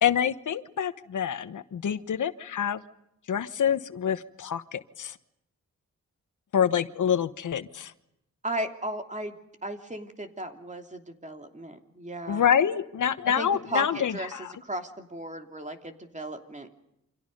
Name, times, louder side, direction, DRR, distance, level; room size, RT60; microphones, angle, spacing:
voice 1, 0.0-2.8 3.3-5.2 6.5-7.9 12.3-14.5, left 8 dB, 80° left, 12 dB, 1.2 m, -26 dB
voice 2, 8.4-9.3 9.6-12.4 13.4-14.3 14.6-16.7, right 1 dB, 25° right, 5 dB, 3.0 m, -35 dB
29.0 x 26.0 x 5.4 m, 0.83 s
wide cardioid pair, 90°, 30 cm